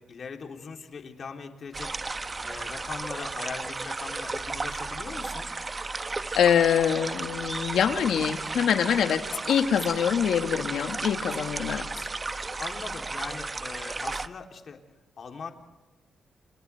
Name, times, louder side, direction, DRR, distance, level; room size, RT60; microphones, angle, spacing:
voice 1, 0.0-2.0 2.4-5.5 12.6-14.8 15.2-15.5, left 5 dB, 55° left, 3 dB, 3.4 m, -40 dB
sound 1, 1.7-14.3, right 3 dB, 30° right, 1.0 m, -34 dB
voice 2, 6.3-11.9, left 8 dB, 80° left, 7 dB, 1.8 m, -24 dB
29.5 x 29.0 x 3.5 m, 1.1 s
cardioid pair, 100°, 0 cm